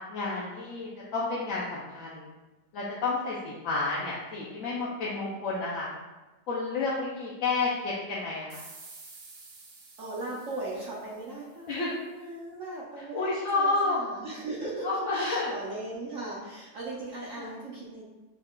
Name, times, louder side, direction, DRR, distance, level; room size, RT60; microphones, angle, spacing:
voice 1, 0.1-2.3 2.7-5.9 6.5-8.6 11.7-11.9 13.1-14.0 14.8-15.5 17.4-17.5, left 3 dB, 65° left, -5 dB, 0.9 m, -30 dB
sound 1, 8.5-11.8, right 4 dB, 75° right, 1.4 m, -50 dB
voice 2, 10.0-18.1, right 2 dB, 60° right, -5 dB, 0.9 m, -38 dB
5.4 x 2.3 x 3.6 m, 1.1 s
omnidirectional pair, 1.9 m